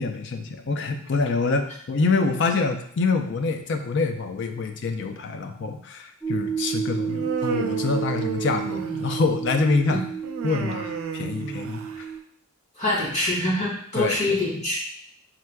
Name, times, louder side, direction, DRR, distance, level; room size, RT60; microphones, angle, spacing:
voice 1, 0.0-10.0 10.4-12.1 13.9-14.4, left 4 dB, 55° left, 6 dB, 0.4 m, -26 dB
sound 1, 6.2-12.2, right 7 dB, 10° left, 1.0 m, -31 dB
Human voice, 7.1-9.4 10.2-12.1, right 5 dB, 70° right, 0.4 m, -32 dB
voice 2, 12.8-14.7, left 1 dB, 30° left, -6 dB, 1.5 m, -25 dB
4.5 x 3.6 x 2.3 m, 0.66 s
head